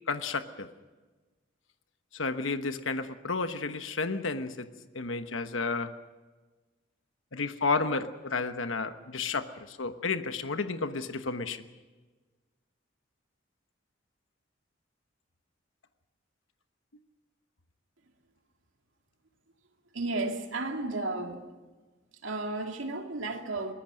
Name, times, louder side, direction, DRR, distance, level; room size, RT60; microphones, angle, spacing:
voice 1, 0.1-0.7 2.1-4.7 4.9-5.9 7.3-11.7, left 4 dB, 85° left, 1.2 m, -32 dB
voice 2, 19.9-21.4 22.2-23.7, right 2 dB, 80° right, 2.4 m, -33 dB
23.0 x 19.5 x 6.4 m
head